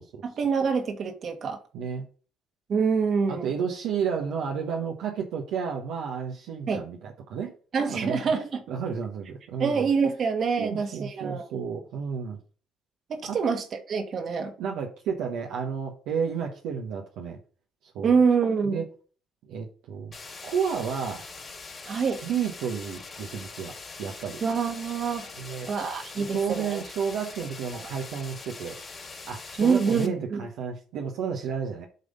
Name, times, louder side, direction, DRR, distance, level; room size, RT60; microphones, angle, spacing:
voice 1, 0.2-1.6 2.7-3.5 6.7-6.8 7.7-8.6 9.6-11.5 13.1-14.5 18.0-18.8 21.9-22.2 24.4-25.3 25.7-26.8 27.7-27.9 29.6-30.4, right 5 dB, 55° right, 1.8 m, -26 dB
voice 2, 1.7-2.0 3.3-7.5 7.9-9.8 10.6-12.4 13.3-13.4 14.6-17.4 17.9-18.2 18.6-18.8 19.5-20.1 20.4-21.2 22.2-23.7 24.0-24.4 25.4-25.7 26.1-28.8 29.2-31.9, right 6 dB, 75° right, 1.2 m, -31 dB
sound 1, 20.1-30.1, left 4 dB, 35° left, 2.9 m, -42 dB
8.1 x 3.4 x 5.4 m
supercardioid pair, 65°, 0 cm